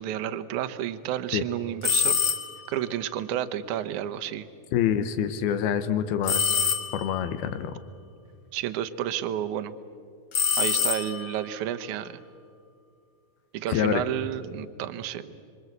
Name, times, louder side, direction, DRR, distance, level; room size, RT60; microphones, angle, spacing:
voice 1, 0.0-2.2 2.7-4.5 8.5-9.7 10.6-12.2 13.5-15.4, right 11 dB, 70° right, 9 dB, 2.1 m, -31 dB
sound 1, 1.8-2.7 6.3-7.3 10.3-11.5, left 7 dB, 60° left, 1.2 m, -25 dB
voice 2, 4.7-6.6 6.9-7.7 13.7-14.0, left 9 dB, 85° left, 10 dB, 3.0 m, -26 dB
26.5 x 25.0 x 8.1 m, 2.2 s
omnidirectional pair, 4.3 m